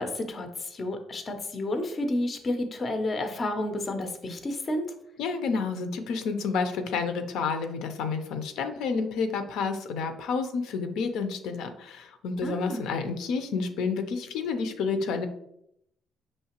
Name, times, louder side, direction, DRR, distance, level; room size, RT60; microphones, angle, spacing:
voice 1, 0.0-4.9 12.4-12.8, left 1 dB, 25° left, 6 dB, 0.4 m, -31 dB
voice 2, 5.2-15.3, left 5 dB, 80° left, 7 dB, 0.5 m, -30 dB
5.6 x 3.2 x 2.9 m, 0.76 s
cardioid pair, 180°, 0 cm